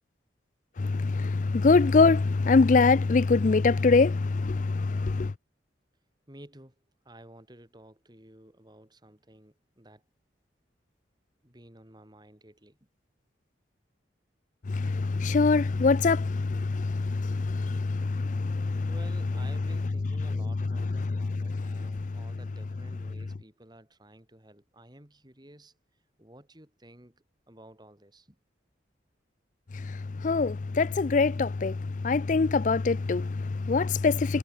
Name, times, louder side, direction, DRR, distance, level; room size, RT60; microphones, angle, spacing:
voice 1, 0.8-5.3 14.7-18.9 20.8-22.2 29.7-34.4, left 4 dB, 45° left, 0.4 m, -24 dB
voice 2, 6.3-6.7 7.0-10.0 11.4-12.8 18.9-25.7 26.2-28.4, right 1 dB, 25° right, 3.3 m, -52 dB
head